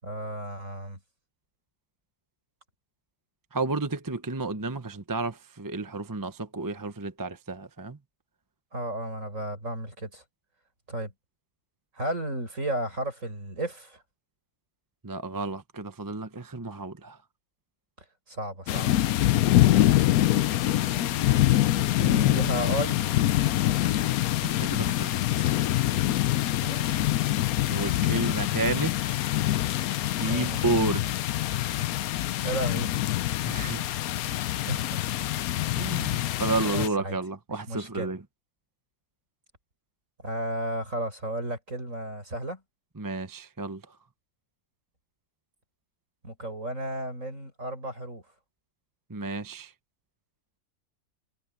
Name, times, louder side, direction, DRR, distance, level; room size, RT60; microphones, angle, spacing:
voice 1, 0.0-1.0 8.7-10.2 10.9-11.1 11.9-14.0 18.3-19.0 21.9-23.1 26.6-27.3 30.3-30.9 32.4-32.9 34.5-35.2 36.7-37.2 37.5-38.1 40.2-42.6 46.2-48.2, right 1 dB, 60° right, 7.2 m, -33 dB
voice 2, 3.5-8.0 15.0-17.2 24.4-25.6 27.7-29.4 30.1-31.1 31.6-31.9 33.5-34.0 35.8-38.2 43.0-43.8 49.1-49.7, right 3 dB, 15° right, 0.9 m, -32 dB
sound 1, 18.7-36.9, left 14 dB, 85° left, 1.1 m, -25 dB
omnidirectional pair, 1.5 m